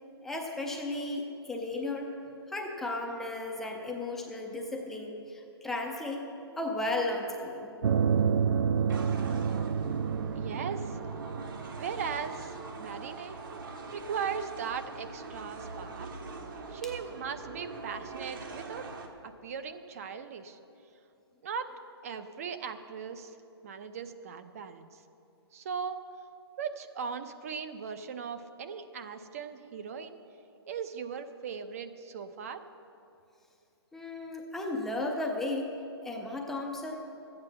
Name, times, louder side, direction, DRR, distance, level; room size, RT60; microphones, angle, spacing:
voice 1, 0.2-2.1 2.5-6.2 6.6-7.7 33.9-35.7 36.0-37.1, left 2 dB, ahead, 0 dB, 0.4 m, -34 dB
sound 1, 7.8-12.7, right 7 dB, 75° right, 0.5 m, -29 dB
sound 2, 8.9-19.1, right 3 dB, 50° right, 1.3 m, -43 dB
voice 2, 10.4-11.0 11.8-12.5 12.8-13.4 13.9-16.1 16.7-18.9 19.2-20.6 21.4-21.7 22.0-23.4 23.6-25.0 25.5-26.0 26.6-30.2 30.7-32.6, right 6 dB, 35° right, 10 dB, 0.6 m, -38 dB
13.0 x 8.9 x 6.7 m, 2.7 s
hypercardioid pair, 170°, 14 cm